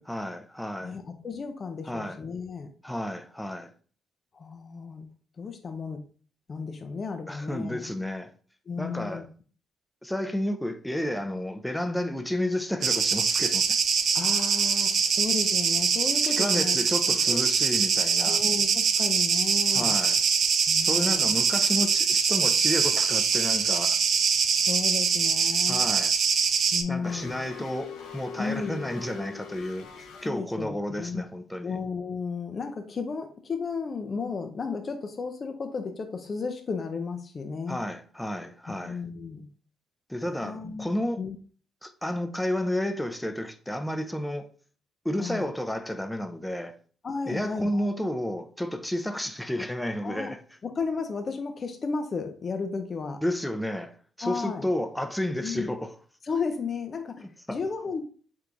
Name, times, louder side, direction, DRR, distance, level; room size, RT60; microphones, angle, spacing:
voice 1, 0.1-1.0 1.8-2.2 2.8-3.7 7.3-8.3 8.8-9.2 10.0-13.7 16.2-18.4 19.7-20.2 20.8-24.0 25.7-26.1 26.9-29.9 30.2-31.8 37.7-39.0 40.1-41.2 41.8-44.5 45.0-46.8 47.2-50.4 53.2-55.9 57.5-57.6, left 1 dB, 5° left, 0.6 m, -31 dB
voice 2, 0.8-2.7 4.3-5.1 5.4-6.0 6.5-7.8 8.7-9.2 14.1-16.8 17.3-17.4 18.2-19.9 20.7-21.3 24.6-25.9 26.7-27.7 28.4-28.8 30.1-31.2 31.6-37.8 38.7-39.5 40.4-40.9 41.2-41.4 45.2-45.5 47.0-47.9 50.0-50.3 50.6-53.2 54.2-54.7 55.4-55.7 56.2-58.0, left 5 dB, 45° left, 0.6 m, -34 dB
sound 1, 12.8-26.8, right 6 dB, 60° right, 0.6 m, -23 dB
sound 2, 27.0-30.3, left 6 dB, 85° left, 0.7 m, -41 dB
4.5 x 3.5 x 2.5 m
supercardioid pair, 65°, 0 cm